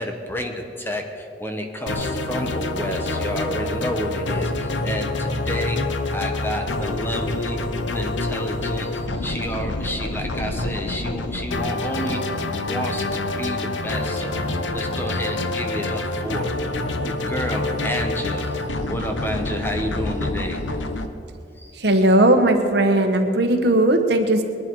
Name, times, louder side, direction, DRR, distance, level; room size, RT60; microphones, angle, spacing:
voice 1, 0.0-5.8 6.1-7.6 7.9-16.5 17.0-18.5 18.9-20.6 21.6-21.7, equal, 10° left, 4 dB, 1.1 m, -30 dB
sound 1, 1.9-21.1, left 2 dB, 85° left, 1.0 m, -27 dB
voice 2, 21.8-24.4, right 1 dB, 60° right, 5 dB, 1.4 m, -17 dB
21.5 x 11.5 x 4.7 m, 2.5 s
head